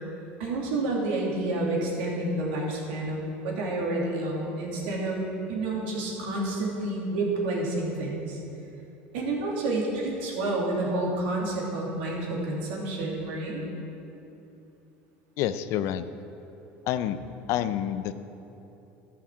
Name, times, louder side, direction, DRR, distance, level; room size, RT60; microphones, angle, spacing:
voice 1, 0.4-5.2 5.5-8.4 9.1-13.6, right 2 dB, 80° right, -3 dB, 2.8 m, -29 dB
voice 2, 15.4-16.0 16.9-17.2 17.5-18.1, left 11 dB, 65° left, 13 dB, 0.5 m, -28 dB
12.0 x 5.9 x 7.3 m, 2.9 s
supercardioid pair, 95°, 5 cm